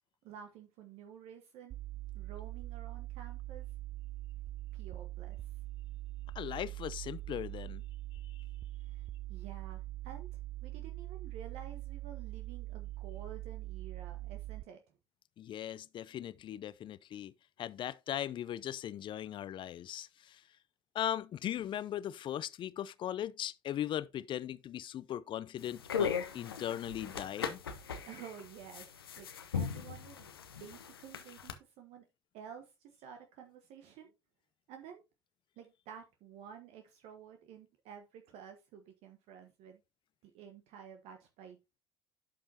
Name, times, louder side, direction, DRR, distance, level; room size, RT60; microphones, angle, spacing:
voice 1, 0.2-1.8 2.1-3.7 4.7-5.6 8.8-14.8 27.8-30.3 30.6-32.1 32.3-34.1 34.7-35.0 35.6-39.8 40.2-41.8, right 8 dB, 60° right, 1.2 m, -51 dB
sound 1, 1.7-14.6, right 17 dB, 40° right, 0.3 m, -43 dB
voice 2, 6.4-7.8 8.2-8.3 15.4-17.3 17.6-20.4 20.9-27.6, left 11 dB, 40° left, 0.5 m, -39 dB
sound 2, 25.6-31.5, left 7 dB, 85° left, 0.8 m, -38 dB
11.5 x 5.3 x 2.8 m
hypercardioid pair, 65°, 12 cm